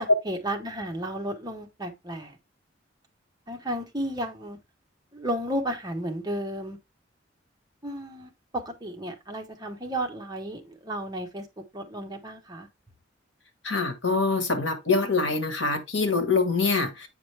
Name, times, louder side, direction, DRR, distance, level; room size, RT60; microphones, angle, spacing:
voice 1, 0.0-2.4 3.5-4.6 5.1-6.8 7.8-11.5 11.7-12.7, right 1 dB, 20° right, 1.2 m, -33 dB
voice 2, 13.6-17.1, left 4 dB, 75° left, 1.5 m, -25 dB
8.2 x 5.0 x 3.3 m
head